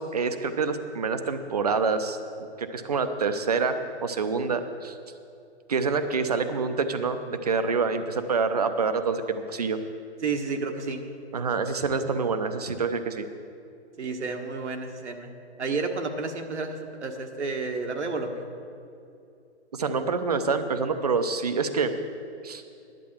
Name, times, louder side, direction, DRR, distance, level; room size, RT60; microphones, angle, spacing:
voice 1, 0.0-2.2 2.6-5.0 5.7-9.8 11.3-13.3 19.7-21.9 22.4-22.6, right 4 dB, 35° right, 9 dB, 0.6 m, -27 dB
voice 2, 10.2-11.0 14.0-18.4, right 4 dB, 80° right, 4 dB, 1.4 m, -31 dB
10.5 x 7.5 x 7.2 m, 2.6 s
hypercardioid pair, 175°, 34 cm